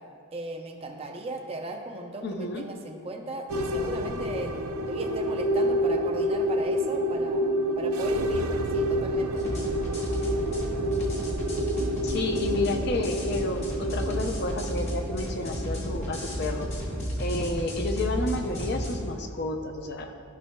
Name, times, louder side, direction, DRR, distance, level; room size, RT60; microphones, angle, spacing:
voice 1, 0.3-4.5 4.9-9.4, right 2 dB, 25° right, 3 dB, 0.5 m, -37 dB
voice 2, 2.2-2.6 12.0-16.7 17.2-20.1, left 2 dB, 50° left, 4 dB, 0.5 m, -31 dB
sound 1, 3.5-17.1, equal, 80° right, 0.5 m, -29 dB
sound 2, 9.4-18.9, equal, 30° left, 1.1 m, -33 dB
13.5 x 5.5 x 2.2 m, 2.4 s
head